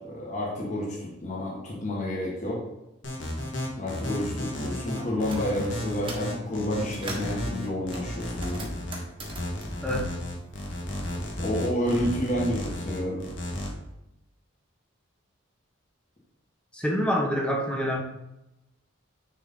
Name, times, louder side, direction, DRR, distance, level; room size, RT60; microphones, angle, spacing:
voice 1, 0.0-2.6 3.8-8.7 11.4-13.2, left 1 dB, 35° left, -4 dB, 1.7 m, -30 dB
sound 1, 3.0-13.7, left 1 dB, 60° left, 1.6 m, -33 dB
sound 2, 5.0-5.4 5.8-6.4 6.7-7.4 7.9-10.8 11.1-12.2, right 2 dB, 25° right, 1.2 m, -42 dB
voice 2, 9.8-10.1 16.7-18.0, equal, 5° left, 0 dB, 1.0 m, -26 dB
9.4 x 4.2 x 3.8 m, 0.89 s
head